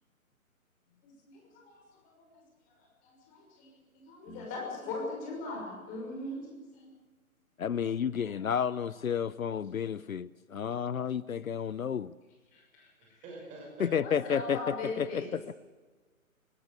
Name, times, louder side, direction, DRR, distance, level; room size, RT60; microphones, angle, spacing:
voice 1, 1.0-2.3 2.7-2.8 3.0-6.9 7.6-7.7 8.2-8.3 12.5-12.9 14.0-15.3, left 3 dB, 20° left, 0 dB, 6.1 m, -40 dB
voice 2, 7.6-12.1 13.8-15.4, left 7 dB, 70° left, 20 dB, 0.7 m, -31 dB
voice 3, 13.0-15.6, right 2 dB, 15° right, 0 dB, 6.0 m, -48 dB
19.5 x 17.0 x 8.1 m, 1.3 s
figure-of-eight pair, 140°, 42 cm